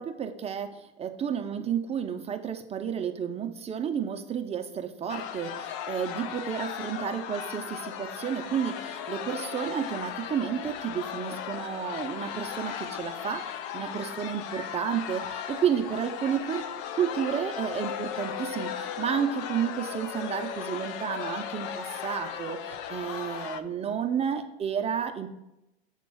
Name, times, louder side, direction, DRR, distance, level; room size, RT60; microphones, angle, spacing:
voice 1, 0.0-16.6 16.9-25.3, right 8 dB, 20° right, 6 dB, 0.6 m, -31 dB
sound 1, 5.1-23.6, left 9 dB, 50° left, 0.6 m, -36 dB
7.2 x 3.7 x 6.1 m, 0.89 s
hypercardioid pair, 100°, 32 cm